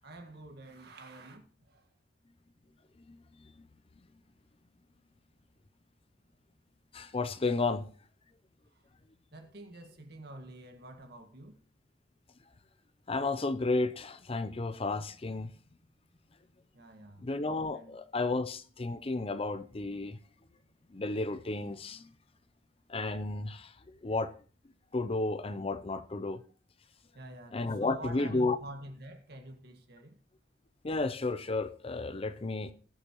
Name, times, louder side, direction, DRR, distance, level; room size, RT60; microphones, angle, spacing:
voice 1, 0.0-1.9 8.7-8.8 9.3-11.6 16.7-17.3 17.7-18.0 27.1-30.1, right 2 dB, 60° right, 1.8 m, -48 dB
voice 2, 6.9-7.9 13.1-15.5 17.2-20.2 20.9-22.1 22.9-23.7 24.0-24.3 24.9-26.4 27.5-28.6 30.8-32.7, left 3 dB, 30° left, 0.5 m, -32 dB
19.5 x 6.7 x 3.0 m
head